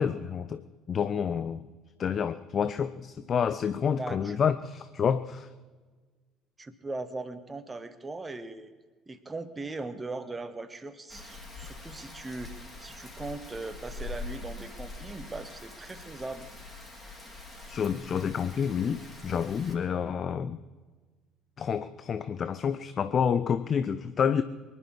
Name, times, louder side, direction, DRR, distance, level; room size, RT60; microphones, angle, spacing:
voice 1, 0.0-1.6 2.0-5.5 17.7-20.6 21.6-24.4, left 7 dB, 40° left, 14 dB, 0.6 m, -29 dB
voice 2, 4.0-4.4 6.6-8.7 9.1-16.5, right 3 dB, 20° right, 11 dB, 1.4 m, -39 dB
Rain, 11.1-19.8, left 3 dB, 15° left, 4.3 m, -44 dB
23.5 x 11.0 x 4.8 m, 1.4 s
figure-of-eight pair, 55°, 0 cm